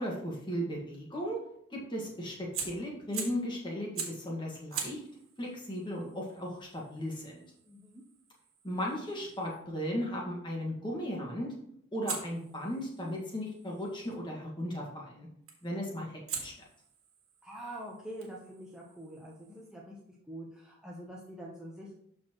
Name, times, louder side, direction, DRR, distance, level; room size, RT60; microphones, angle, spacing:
voice 1, 0.0-1.4 1.7-5.1 5.4-7.4 8.6-11.5 11.9-15.3 15.6-16.5, equal, 20° left, -2 dB, 1.8 m, -36 dB
Fire, 2.5-3.5 3.9-4.3 4.7-9.6 12.0-14.2 15.5-15.8 16.3-19.7, right 6 dB, 65° right, 1.9 m, -44 dB
voice 2, 7.6-8.0 17.4-20.0 20.3-21.9, right 1 dB, 5° right, -4 dB, 0.8 m, -45 dB
12.5 x 4.3 x 3.1 m, 0.73 s
head